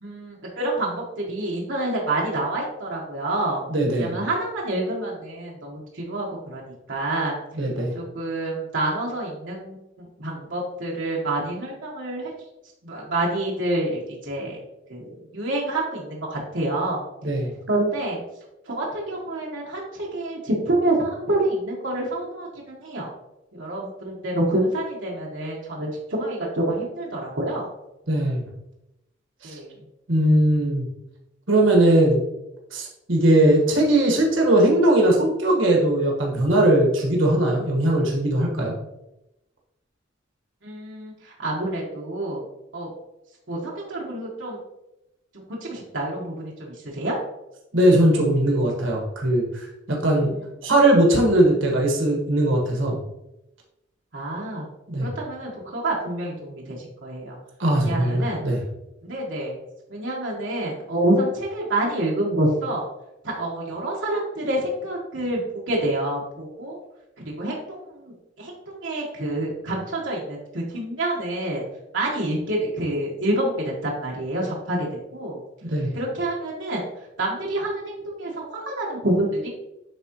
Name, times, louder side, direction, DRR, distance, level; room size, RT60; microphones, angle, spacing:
voice 1, 0.0-3.6 4.0-7.4 7.9-12.3 12.8-14.6 14.9-17.0 17.7-18.2 18.7-23.1 23.5-27.7 29.4-29.8 40.6-42.4 42.7-42.9 43.5-44.6 45.5-47.1 54.1-54.7 55.0-57.4 57.7-58.4 59.0-59.6 59.9-62.9 63.2-66.8 67.2-71.6 71.9-75.4 75.9-76.8 77.2-79.5, right 1 dB, 75° right, -3 dB, 1.5 m, -27 dB
voice 2, 3.7-4.2 7.6-7.9 17.2-17.5 28.1-28.5 29.4-29.5 30.1-30.8 31.5-32.2 32.7-38.7 47.7-50.3 50.6-53.0 54.9-55.1 57.6-58.6 75.7-75.9, right 1 dB, 90° right, -1 dB, 1.5 m, -19 dB
10.0 x 3.8 x 3.0 m, 0.90 s
head